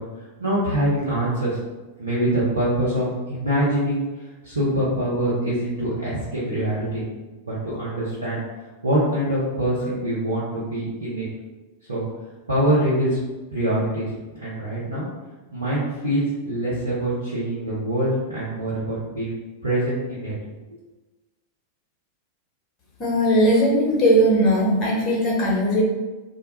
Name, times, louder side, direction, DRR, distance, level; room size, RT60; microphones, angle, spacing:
voice 1, 0.0-1.6 2.0-4.0 4.4-7.0 7.4-8.4 8.8-11.3 11.9-12.1 12.5-13.2 13.5-14.1 14.4-15.0 15.5-19.4 19.6-20.3 20.7-20.8, right 1 dB, 80° right, -9 dB, 0.6 m, -24 dB
voice 2, 23.0-25.8, equal, 30° left, -4 dB, 0.9 m, -19 dB
2.1 x 2.1 x 3.0 m, 1.2 s
figure-of-eight pair, 90°, 0 cm